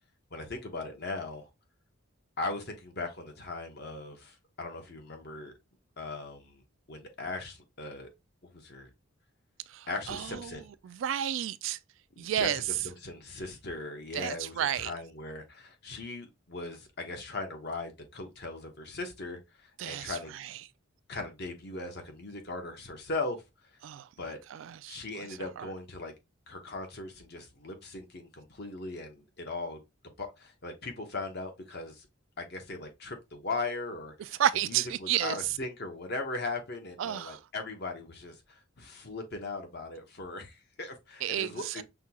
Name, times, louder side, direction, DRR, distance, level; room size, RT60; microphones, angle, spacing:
voice 1, 0.3-1.5 2.4-5.5 6.0-6.6 6.9-8.1 8.4-8.9 9.9-10.7 12.2-20.4 21.1-23.4 24.2-24.4 24.9-26.1 26.5-29.8 30.2-32.1 32.4-34.4 34.7-41.8, left 3 dB, 55° left, 1.0 m, -39 dB
voice 2, 9.7-11.8 12.2-12.6 14.1-14.9 19.8-20.5 23.8-24.1 24.5-25.3 25.6-25.7 34.2-35.4 37.0-37.4 41.2-41.8, right 10 dB, 65° right, 0.3 m, -32 dB
5.8 x 2.3 x 2.9 m
head